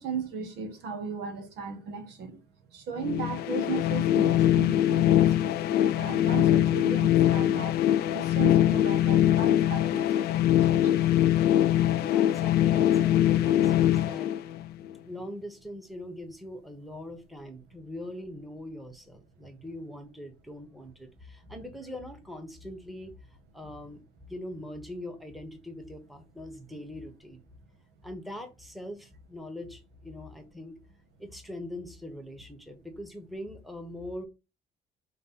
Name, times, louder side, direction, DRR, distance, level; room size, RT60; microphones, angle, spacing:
voice 1, 0.0-2.4 2.7-7.8 8.1-11.0, right 4 dB, 80° right, 1.1 m, -36 dB
sound 1, 3.0-14.9, left 12 dB, 70° left, 0.4 m, -23 dB
voice 2, 12.0-14.3 15.1-23.1 23.5-27.4 28.0-30.8 31.2-34.2, left 1 dB, ahead, 1.0 m, -42 dB
5.3 x 2.1 x 4.2 m
cardioid pair, 110°, 17 cm